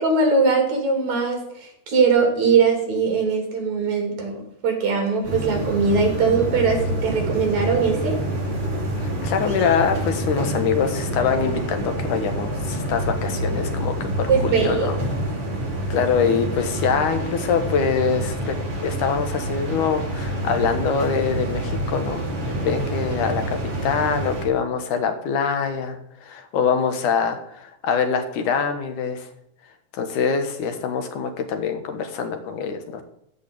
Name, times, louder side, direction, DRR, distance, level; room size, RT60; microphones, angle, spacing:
voice 1, 0.0-4.4 4.6-8.2 14.3-14.9, right 5 dB, 60° right, 2 dB, 4.2 m, -21 dB
sound 1, 5.2-24.4, right 1 dB, 35° right, 3.8 m, -27 dB
voice 2, 9.0-15.0 15.9-23.6 23.8-29.3 29.9-33.0, left 6 dB, 75° left, 7 dB, 2.8 m, -24 dB
15.0 x 5.0 x 8.6 m, 0.76 s
omnidirectional pair, 3.7 m